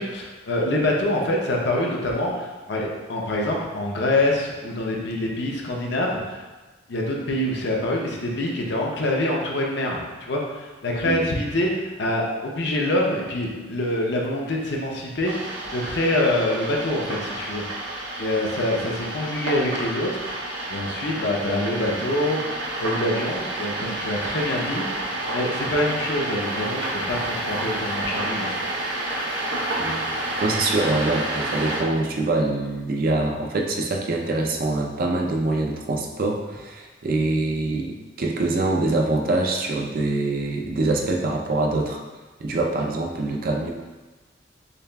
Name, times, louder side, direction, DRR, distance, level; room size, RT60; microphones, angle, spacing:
voice 1, 0.0-6.4 6.9-17.6 18.2-20.3 20.7-22.5 22.8-25.0 25.3-28.5, left 1 dB, 60° left, -1 dB, 0.6 m, -25 dB
sound 1, 15.2-31.8, right 1 dB, 75° right, 0.8 m, -29 dB
voice 2, 29.8-30.1 30.4-42.0 42.4-43.7, right 2 dB, 45° right, 1 dB, 0.4 m, -24 dB
6.5 x 2.4 x 2.2 m, 1.2 s
head